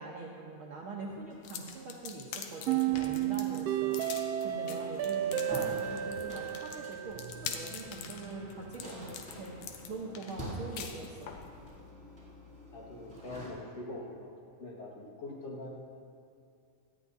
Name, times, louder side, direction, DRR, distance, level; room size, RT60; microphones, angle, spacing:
voice 1, 0.0-9.6 9.9-11.3, right 3 dB, 60° right, -3 dB, 1.4 m, -43 dB
sound 1, 1.4-11.5, left 7 dB, 85° left, 2.3 m, -44 dB
sound 2, 2.7-7.7, right 11 dB, 90° right, 1.3 m, -32 dB
sound 3, 2.9-13.5, equal, ahead, 3.0 m, -47 dB
voice 2, 12.7-14.3 14.6-15.7, left 2 dB, 55° left, -3 dB, 2.6 m, -43 dB
17.5 x 13.0 x 2.7 m, 2.4 s
omnidirectional pair, 3.3 m